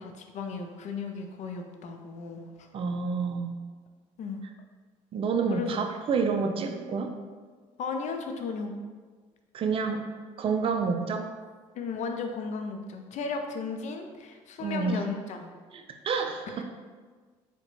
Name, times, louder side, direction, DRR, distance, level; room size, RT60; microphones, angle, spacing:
voice 1, 0.0-2.7 4.2-4.4 5.5-5.7 7.8-8.7 11.7-15.5, left 4 dB, 55° left, 5 dB, 0.4 m, -35 dB
voice 2, 2.7-3.5 5.1-7.1 9.5-10.0 10.4-11.3 14.6-15.0 15.7-16.6, right 5 dB, 40° right, 5 dB, 0.4 m, -28 dB
3.6 x 2.1 x 3.0 m, 1.5 s
supercardioid pair, 80°, 14 cm